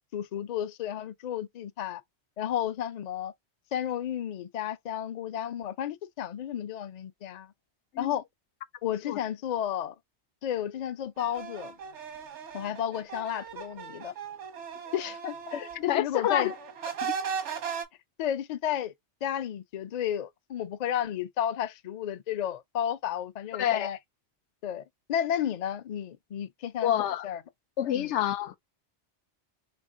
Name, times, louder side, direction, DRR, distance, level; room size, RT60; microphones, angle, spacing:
voice 1, 0.1-2.0 2.4-3.3 3.7-7.5 8.0-8.2 8.8-9.9 10.4-11.7 12.5-14.1 14.9-16.5 18.2-18.9 19.2-24.0 24.6-24.8 25.1-26.9 27.2-27.4 28.0-28.1, left 10 dB, 55° left, 0.5 m, -32 dB
sound 1, 11.2-15.8 16.1-17.8, right 7 dB, 90° right, 1.2 m, -37 dB
voice 2, 15.7-16.5 17.0-17.1 23.5-23.9 26.8-27.3 27.8-28.6, left 11 dB, 85° left, 0.9 m, -28 dB
3.5 x 3.1 x 2.4 m
omnidirectional pair, 1.2 m